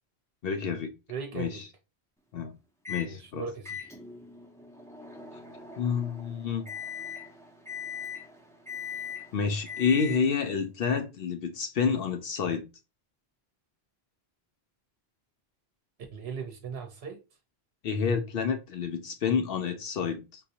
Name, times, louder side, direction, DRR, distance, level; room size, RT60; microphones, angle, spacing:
voice 1, 0.4-0.9 1.3-1.6 2.3-2.5 2.9-3.5 5.8-6.7 9.3-12.7 17.8-20.4, left 6 dB, 65° left, 0.7 m, -29 dB
voice 2, 1.1-1.6 3.1-3.8 16.1-17.2, right 5 dB, 65° right, 0.9 m, -38 dB
Microwave oven, 2.9-3.1 3.7-10.5, left 7 dB, 5° left, 0.5 m, -41 dB
3.9 x 2.6 x 2.7 m
omnidirectional pair, 1.1 m